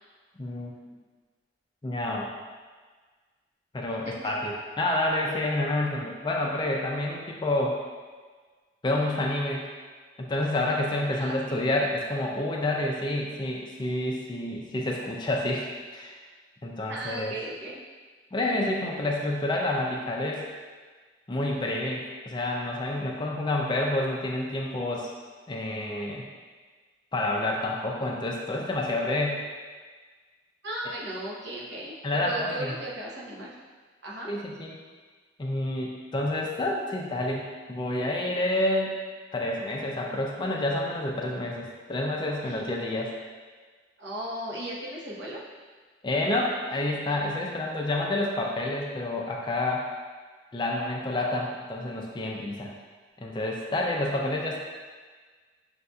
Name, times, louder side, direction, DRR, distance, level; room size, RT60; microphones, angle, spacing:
voice 1, 0.4-0.7 1.8-2.3 3.7-7.8 8.8-9.7 10.2-16.2 16.6-17.3 18.3-20.5 21.3-25.1 25.5-26.2 27.1-29.4 32.0-32.7 34.3-34.7 35.4-38.9 39.3-43.1 46.0-49.9 50.5-52.7 53.2-54.6, left 1 dB, 25° left, -1 dB, 0.4 m, -29 dB
voice 2, 11.1-11.6 16.9-17.8 30.6-33.6 34.0-34.3 42.4-42.7 44.0-45.4, right 1 dB, 65° right, -5 dB, 0.8 m, -36 dB
6.4 x 2.6 x 2.3 m, 1.5 s
head